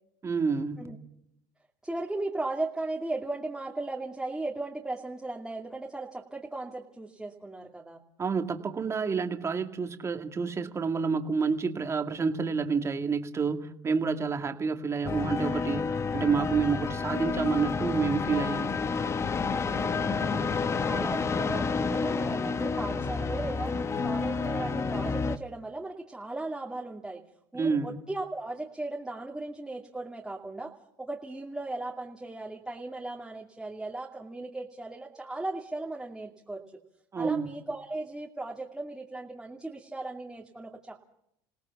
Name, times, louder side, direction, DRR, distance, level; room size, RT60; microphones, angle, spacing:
voice 1, 0.2-0.9 8.2-18.8 27.5-28.0 37.1-37.5, right 5 dB, 25° right, 6 dB, 2.2 m, -29 dB
voice 2, 1.8-8.0 19.6-23.8 24.0-27.2 27.5-30.7 31.0-36.6 37.2-41.0, right 2 dB, 5° right, -2 dB, 2.5 m, -37 dB
sound 1, 15.0-25.4, left 4 dB, 25° left, 1.2 m, -29 dB
28.0 x 17.5 x 7.2 m, 0.77 s
supercardioid pair, 105°, 10 cm